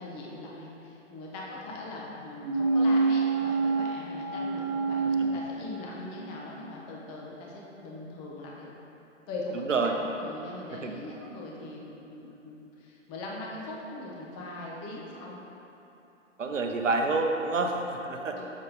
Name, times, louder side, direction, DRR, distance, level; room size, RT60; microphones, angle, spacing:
voice 1, 0.0-8.7 9.3-15.4 18.3-18.4, left 2 dB, 15° left, -3 dB, 0.6 m, -41 dB
sound 1, 2.4-6.2 6.5-6.6, right 3 dB, 35° right, 1.0 m, -27 dB
voice 2, 16.4-18.4, right 3 dB, 70° right, 3 dB, 0.8 m, -28 dB
7.1 x 5.3 x 3.9 m, 3.0 s
figure-of-eight pair, 120°, 38 cm